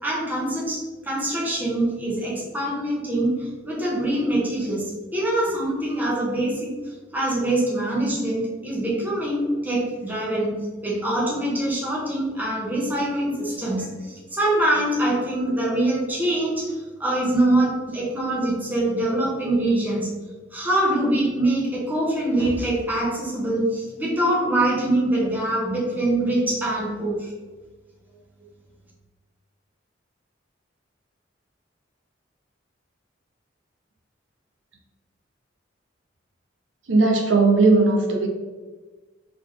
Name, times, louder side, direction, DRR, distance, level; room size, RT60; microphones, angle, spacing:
voice 1, 0.0-6.7 7.1-10.5 10.8-20.1 20.5-27.3, right 1 dB, 10° right, -5 dB, 1.1 m, -24 dB
voice 2, 36.9-38.3, right 3 dB, 75° right, 2 dB, 0.6 m, -17 dB
3.9 x 3.8 x 3.2 m, 1.3 s
head